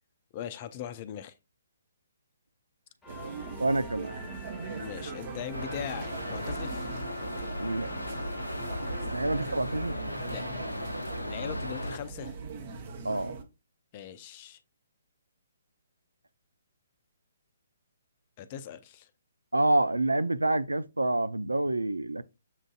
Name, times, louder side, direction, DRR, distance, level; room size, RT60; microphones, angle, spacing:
voice 1, 0.3-1.3 4.8-6.9 9.0-9.5 10.3-10.4 11.0-12.4 13.9-14.6 18.4-19.1, left 9 dB, 35° left, 0.5 m, -40 dB
sound 1, 3.0-9.6, left 1 dB, 5° left, 1.1 m, -48 dB
sound 2, 3.1-13.4, right 4 dB, 40° right, 0.9 m, -41 dB
voice 2, 3.6-4.4 7.6-8.2 9.1-10.0 13.0-13.3 19.5-22.2, right 2 dB, 85° right, 0.4 m, -28 dB
sound 3, 5.5-12.0, equal, 90° left, 0.5 m, -36 dB
7.2 x 2.6 x 2.4 m
figure-of-eight pair, 130°, 0 cm